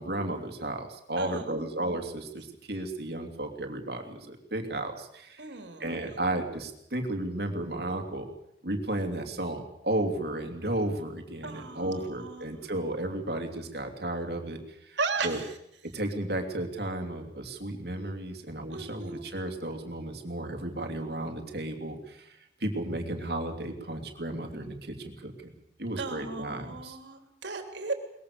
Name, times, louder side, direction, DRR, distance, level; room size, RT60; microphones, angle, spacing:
voice 1, 0.0-8.3 8.6-15.0 15.2-15.4 15.8-25.5 25.8-27.0, right 1 dB, 60° right, 4 dB, 3.0 m, -34 dB
voice 2, 1.2-1.6 5.4-6.2 11.4-12.5 15.0-15.5 18.7-19.3 26.0-27.9, right 4 dB, 80° right, 6 dB, 3.4 m, -36 dB
22.5 x 20.5 x 6.8 m, 0.77 s
head